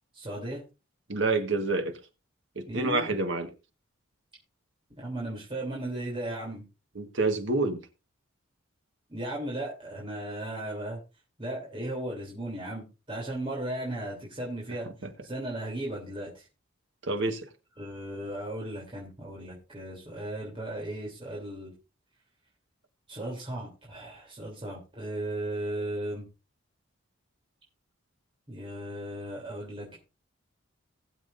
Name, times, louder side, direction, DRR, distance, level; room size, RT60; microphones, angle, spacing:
voice 1, 0.1-0.6 2.7-3.1 5.0-6.6 9.1-11.0 11.4-14.9 15.2-16.5 17.8-21.7 23.1-26.2 28.5-30.0, right 1 dB, 25° right, 3.3 m, -36 dB
voice 2, 1.1-2.0 2.5-3.5 6.9-7.8 15.0-15.1 17.0-17.5, right 3 dB, 65° right, 1.5 m, -28 dB
19.5 x 7.4 x 2.6 m
head